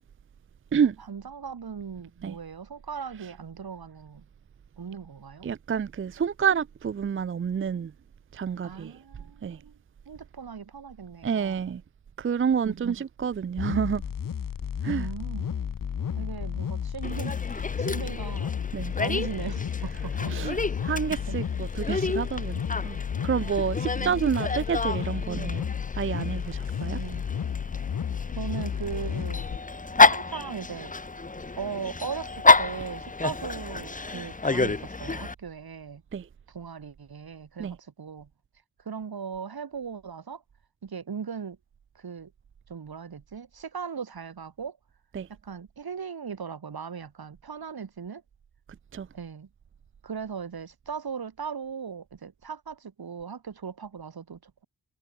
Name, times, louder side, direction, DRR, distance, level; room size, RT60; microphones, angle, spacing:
voice 1, 0.8-4.2 4.8-5.5 8.6-9.8 10.1-11.6 12.6-12.9 14.8-15.5 16.2-18.6 19.0-20.5 21.3-21.4 24.0-24.4 26.8-27.3 28.3-29.4 30.1-30.9 31.6-36.0 36.5-38.3 38.8-40.4 40.8-41.6 41.9-42.3 42.7-44.8 45.3-48.2 49.1-49.5 50.0-54.6, right 6 dB, 75° right, 6.5 m, -38 dB
voice 2, 5.4-7.9 8.3-9.0 9.4-9.6 11.2-11.8 12.2-14.0 14.8-15.1 18.7-18.9 19.8-20.6 20.8-23.0 23.2-25.7 26.0-27.0 36.1-36.3 37.6-37.8 45.1-45.3 48.9-49.1, right 7 dB, 35° right, 0.4 m, -29 dB
sound 1, 13.6-29.6, left 8 dB, 60° left, 1.1 m, -32 dB
Dog, 17.0-35.3, left 3 dB, 20° left, 1.0 m, -28 dB
wide cardioid pair, 90°, 37 cm